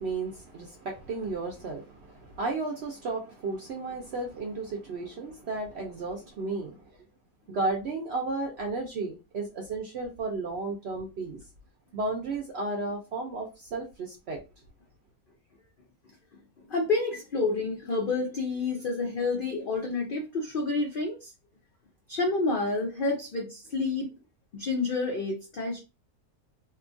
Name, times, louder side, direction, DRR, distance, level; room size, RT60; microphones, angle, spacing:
voice 1, 0.0-6.8 7.5-11.4 11.9-14.4, right 3 dB, 70° right, 0.6 m, -33 dB
voice 2, 16.7-21.3 22.1-24.1 24.5-25.8, left 3 dB, 90° left, 0.4 m, -29 dB
2.8 x 2.3 x 2.5 m
omnidirectional pair, 1.6 m